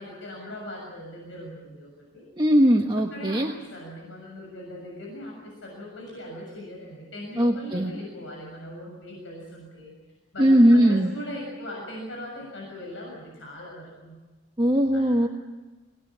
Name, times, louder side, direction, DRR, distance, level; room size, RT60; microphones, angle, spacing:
voice 1, 0.0-2.2 3.1-9.9 10.3-14.2 14.9-15.3, left 1 dB, 75° left, -2 dB, 6.8 m, -40 dB
voice 2, 2.4-3.5 7.4-7.9 10.4-11.1 14.6-15.3, equal, 25° right, 2 dB, 1.3 m, -19 dB
25.0 x 19.0 x 8.6 m, 1.2 s
head